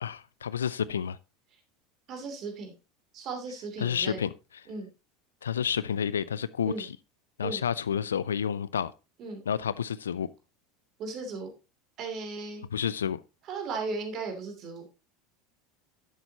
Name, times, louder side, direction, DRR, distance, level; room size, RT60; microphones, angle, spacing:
voice 1, 0.0-1.2 3.8-4.3 5.4-7.0 7.4-8.9 9.5-10.3 12.7-13.2, left 8 dB, 75° left, 0.4 m, -30 dB
voice 2, 2.1-2.7 3.1-4.2 4.7-4.9 6.7-6.8 7.4-7.6 9.2-9.4 11.0-11.5 12.0-12.6 13.5-14.9, right 4 dB, 45° right, 2.9 m, -36 dB
10.5 x 7.9 x 2.9 m
figure-of-eight pair, 75°, 0 cm